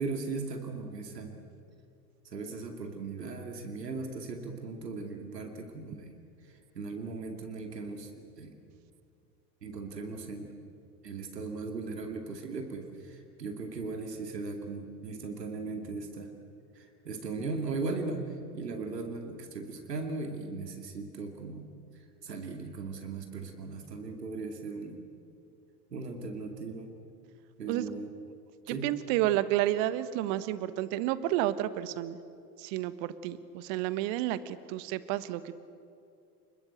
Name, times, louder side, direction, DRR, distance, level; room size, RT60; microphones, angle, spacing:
voice 1, 0.0-1.4 2.3-6.2 6.7-8.6 9.6-10.6 11.0-16.3 16.8-18.3 18.5-21.7 22.2-25.0 25.9-26.9 27.6-28.1 28.7-28.9, right 3 dB, 80° right, 4 dB, 2.5 m, -38 dB
voice 2, 28.7-32.2 32.6-35.5, right 14 dB, 50° right, 14 dB, 1.4 m, -30 dB
29.5 x 21.5 x 8.0 m, 2.5 s
figure-of-eight pair, 75°, 48 cm